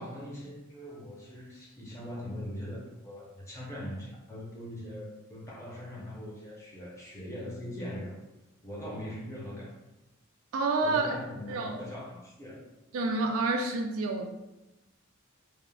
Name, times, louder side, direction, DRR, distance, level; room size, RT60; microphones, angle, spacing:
voice 1, 0.0-8.2 8.6-9.7 10.8-12.7, left 1 dB, 15° left, -5 dB, 0.6 m, -41 dB
voice 2, 10.5-11.1 11.5-11.8 12.9-14.3, right 3 dB, 75° right, 4 dB, 0.4 m, -28 dB
3.5 x 2.0 x 2.2 m, 0.98 s
head